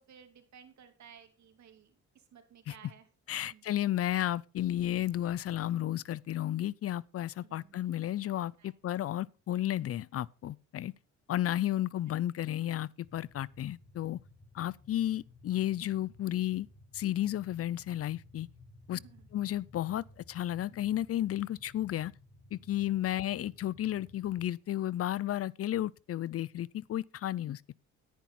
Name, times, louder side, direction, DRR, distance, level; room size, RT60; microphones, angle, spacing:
voice 1, 0.0-3.1 3.4-3.6 7.4-7.8 8.6-9.1 11.7-11.8 18.9-19.3, right 8 dB, 65° right, 2.7 m, -57 dB
voice 2, 3.3-10.9 11.3-14.2 14.5-16.7 16.9-18.5 18.9-19.0 19.3-22.1 22.5-27.6, left 12 dB, 50° left, 0.5 m, -33 dB
sound 1, 13.0-24.5, left 2 dB, 35° left, 5.1 m, -57 dB
11.0 x 10.5 x 4.2 m
cardioid pair, 90°, 30 cm